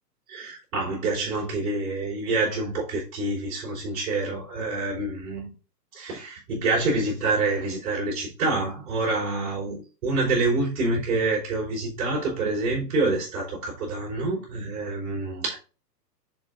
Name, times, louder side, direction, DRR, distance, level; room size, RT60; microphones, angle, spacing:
voice 1, 0.3-5.5 5.9-15.5, right 3 dB, 55° right, 4.4 m, -27 dB
7.4 x 6.8 x 2.6 m
hypercardioid pair, 125°, 50 cm